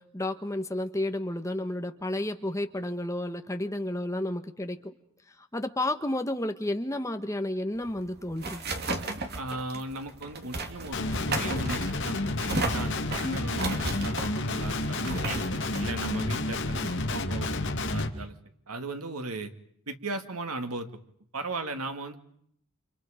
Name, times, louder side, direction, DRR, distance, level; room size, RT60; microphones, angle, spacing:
voice 1, 0.0-4.8 5.5-8.6, left 1 dB, 15° left, 7 dB, 1.4 m, -31 dB
sound 1, 7.8-17.1, right 3 dB, 45° right, 2.7 m, -35 dB
voice 2, 9.4-15.4 15.8-18.3 18.7-19.5 19.9-20.9 21.3-22.2, right 2 dB, 90° right, 7 dB, 2.4 m, -37 dB
Guitar, 10.9-18.1, left 2 dB, 55° left, 2.4 m, -30 dB
29.5 x 28.5 x 5.2 m, 0.69 s
head